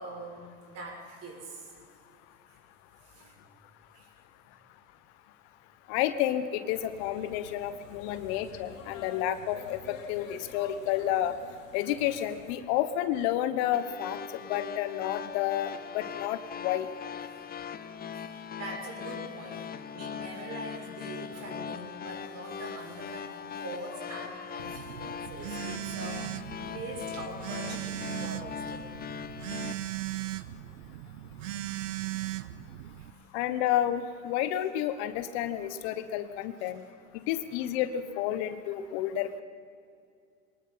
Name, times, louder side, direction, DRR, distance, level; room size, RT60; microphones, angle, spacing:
voice 1, 0.0-1.8 2.5-2.6 3.0-3.5 3.9-4.1 18.1-28.9 33.0-33.3 36.6-36.8, right 2 dB, 40° right, 0 dB, 6.7 m, -43 dB
voice 2, 5.9-11.4 11.7-14.2 14.5-16.9 33.3-36.8 37.1-39.4, left 11 dB, 55° left, 11 dB, 1.2 m, -30 dB
sound 1, 6.7-12.6, left 6 dB, 85° left, 2.3 m, -49 dB
sound 2, 13.7-29.7, left 7 dB, 25° left, 0.9 m, -40 dB
Telephone, 24.6-33.1, right 14 dB, 75° right, 0.9 m, -38 dB
23.0 x 20.0 x 5.7 m, 2.4 s
hypercardioid pair, 90°, 39 cm